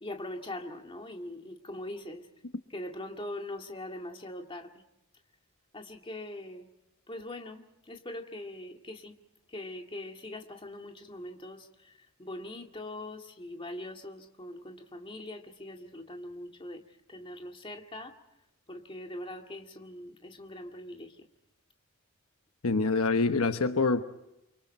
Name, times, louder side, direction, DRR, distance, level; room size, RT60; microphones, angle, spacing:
voice 1, 0.0-2.3 2.7-4.7 5.7-6.7 7.1-9.2 9.5-16.8 17.1-18.2 18.7-21.2, left 1 dB, 25° left, 2.1 m, -42 dB
voice 2, 22.6-24.0, left 3 dB, 75° left, 1.1 m, -25 dB
29.5 x 24.5 x 4.4 m
head